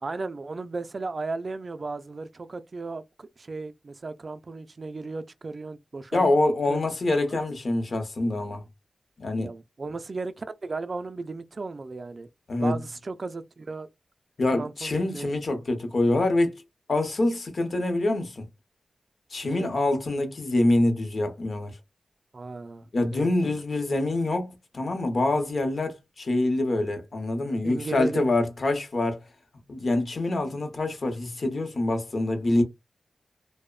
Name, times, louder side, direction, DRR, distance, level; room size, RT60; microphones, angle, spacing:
voice 1, 0.0-6.3 6.7-6.8 9.4-12.3 12.6-13.9 14.5-15.3 19.4-19.7 22.3-22.9 23.1-23.5 27.6-28.3, right 3 dB, 50° right, 0.3 m, -35 dB
voice 2, 6.1-8.6 9.2-9.5 12.5-12.8 14.4-16.6 16.9-18.4 19.3-21.8 22.9-29.2 29.7-32.6, left 2 dB, 60° left, 0.7 m, -25 dB
2.9 x 2.0 x 2.3 m
wide cardioid pair, 85°, 0 cm